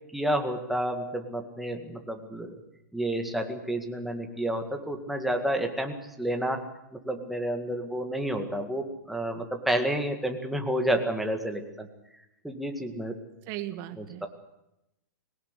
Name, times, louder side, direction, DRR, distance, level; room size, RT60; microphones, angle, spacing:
voice 1, 0.1-2.5 2.9-6.6 7.1-11.9 12.4-13.1 14.0-14.3, right 1 dB, ahead, 4 dB, 2.0 m, -30 dB
voice 2, 13.5-14.3, right 14 dB, 30° right, 10 dB, 1.7 m, -37 dB
21.5 x 18.5 x 8.2 m, 0.87 s
hypercardioid pair, 160°, 10 cm